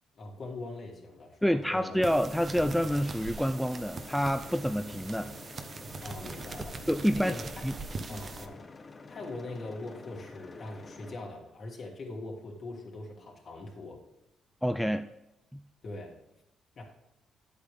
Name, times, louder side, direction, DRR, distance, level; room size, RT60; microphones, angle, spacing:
voice 1, 0.2-2.0 6.0-6.7 7.1-7.4 8.1-8.6 9.1-14.0 15.8-16.1 16.8-16.9, left 2 dB, 50° left, -1 dB, 2.9 m, -41 dB
voice 2, 1.4-5.3 6.9-7.3 7.6-7.7 8.1-8.2 14.6-15.1 15.5-15.6, equal, ahead, 9 dB, 0.4 m, -28 dB
sound 1, 1.6-11.1, left 3 dB, 30° left, 0.8 m, -49 dB
sound 2, 2.0-8.5, right 4 dB, 40° right, 0.9 m, -42 dB
9.8 x 8.4 x 3.5 m, 0.93 s
cardioid pair, 90°, 0 cm